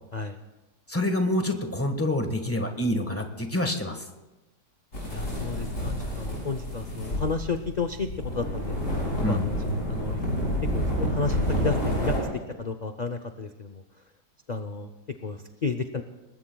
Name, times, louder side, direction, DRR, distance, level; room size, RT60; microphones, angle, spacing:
voice 1, 0.9-4.1 9.2-9.5, left 1 dB, 10° left, 5 dB, 1.3 m, -27 dB
sound 1, 4.9-12.2, equal, 50° left, 6.9 m, -29 dB
voice 2, 5.1-8.1 8.3-8.8 9.3-9.6 9.9-10.2 10.7-12.1 12.6-13.8 14.5-14.9 15.2-16.0, left 4 dB, 75° left, 8 dB, 0.4 m, -32 dB
26.5 x 20.0 x 2.3 m, 1.1 s
omnidirectional pair, 1.7 m